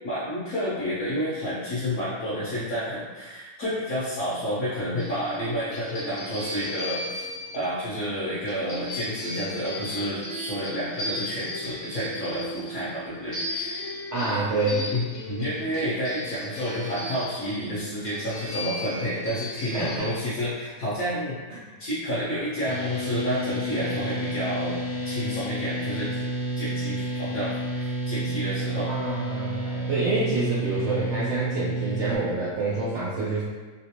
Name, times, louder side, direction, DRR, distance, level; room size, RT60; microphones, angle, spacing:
voice 1, 0.0-13.8 14.9-21.4 21.8-24.8 25.0-26.1 26.6-28.9, equal, 55° left, -11 dB, 1.2 m, -30 dB
sound 1, 5.0-20.0, left 1 dB, 85° left, 0.6 m, -36 dB
voice 2, 14.1-14.8 19.7-19.9 21.5-21.6 28.9-33.4, right 2 dB, 80° right, -8 dB, 0.6 m, -27 dB
sound 2, 22.6-32.2, right 1 dB, 25° left, 0.6 m, -30 dB
3.3 x 2.5 x 2.9 m, 1.3 s
omnidirectional pair, 2.0 m